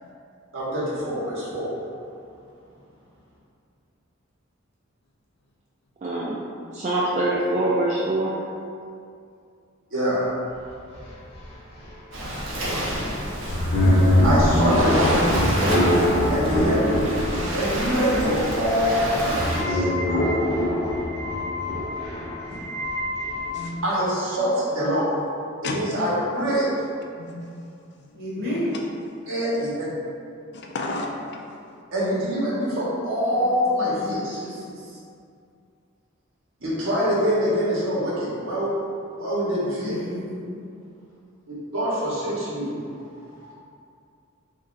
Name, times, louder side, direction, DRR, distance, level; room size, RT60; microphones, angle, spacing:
voice 1, 0.5-1.7 9.9-10.2 14.2-15.3 16.3-17.2 17.5-19.9 20.2-20.3 22.5-22.6 23.8-25.2 25.6-26.7 29.3-29.9 31.9-34.4 36.6-38.7 39.2-39.9 41.7-42.8 43.4-43.5, equal, 85° right, -7 dB, 1.1 m, -24 dB
voice 2, 6.0-6.4 6.7-8.4, right 1 dB, 35° right, -6 dB, 0.3 m, -24 dB
sound 1, 10.6-10.7 10.9-23.7, left 1 dB, 30° left, 0.7 m, -24 dB
Waves surf, 12.1-19.6, equal, 65° right, 0.7 m, -27 dB
voice 3, 23.4-23.8 25.6-25.8 27.2-27.5 28.1-28.6 30.5-31.5, left 2 dB, 55° left, 1 dB, 0.4 m, -33 dB
voice 4, 28.1-28.8 33.4-33.5 33.8-35.0 39.8-40.5, left 1 dB, 50° right, -7 dB, 1.1 m, -32 dB
3.1 x 2.5 x 3.8 m, 2.4 s
head